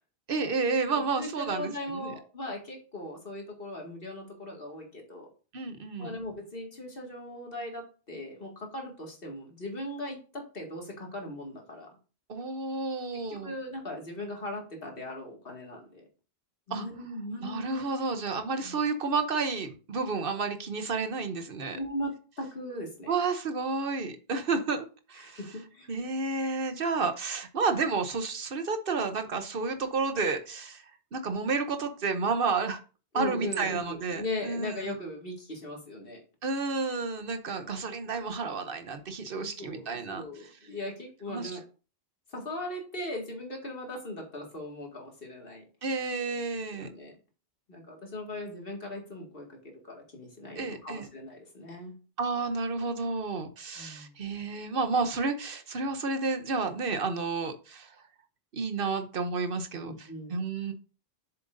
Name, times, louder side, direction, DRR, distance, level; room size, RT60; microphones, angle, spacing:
voice 1, 0.3-2.1 5.5-6.2 12.3-13.5 16.7-16.9 17.4-21.8 23.1-24.8 25.1-25.4 25.9-30.8 31.1-32.8 33.1-34.9 36.4-40.2 41.3-41.5 45.8-46.9 50.6-51.1 52.2-57.9 58.5-60.7, right 4 dB, 65° right, 8 dB, 1.0 m, -31 dB
voice 2, 0.9-5.3 6.0-11.9 13.3-16.1 16.7-18.0 18.6-18.8 21.7-23.1 25.1-25.9 33.1-36.2 39.3-41.6 42.3-45.6 46.8-47.2 47.7-51.9 53.8-54.2 59.8-60.4, left 1 dB, 65° left, 1 dB, 2.3 m, -39 dB
7.7 x 6.9 x 2.6 m, 0.35 s
omnidirectional pair, 1.0 m